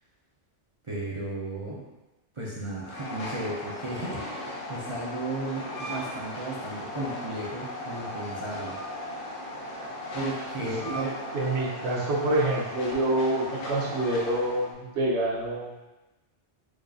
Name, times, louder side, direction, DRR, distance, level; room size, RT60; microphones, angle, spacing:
voice 1, 0.8-1.9 2.3-8.8 10.1-11.1, right 2 dB, 40° right, -6 dB, 0.5 m, -34 dB
Train, 2.8-14.7, left 1 dB, 80° left, 0.9 m, -37 dB
voice 2, 10.6-15.7, right 1 dB, 75° right, -4 dB, 1.1 m, -27 dB
4.7 x 2.5 x 2.3 m, 1.0 s
omnidirectional pair, 1.2 m